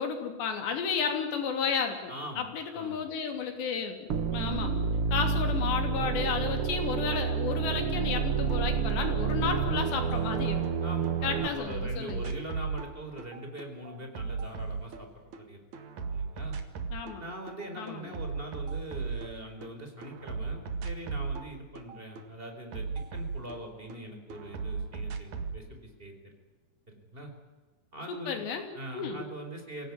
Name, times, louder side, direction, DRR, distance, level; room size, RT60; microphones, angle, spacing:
voice 1, 0.0-4.7 5.1-10.6 11.2-12.3 16.9-17.2 17.8-18.2 28.1-28.6 28.9-29.2, left 6 dB, 90° left, 5 dB, 5.2 m, -32 dB
voice 2, 2.1-2.5 2.7-3.1 10.8-15.1 15.4-15.6 16.1-16.5 17.2-22.9 23.1-26.1 26.9-27.3 27.9-28.4 28.7-29.9, right 1 dB, 15° right, 4 dB, 4.3 m, -42 dB
sound 1, 4.1-11.5, right 6 dB, 80° right, 1.2 m, -29 dB
sound 2, 8.5-8.6 8.9-11.1 11.4-15.4 15.7-17.2 17.5-19.7 20.0-24.0 24.3-25.6, right 5 dB, 50° right, 2.8 m, -36 dB
24.5 x 17.5 x 9.7 m, 1.3 s
omnidirectional pair, 4.8 m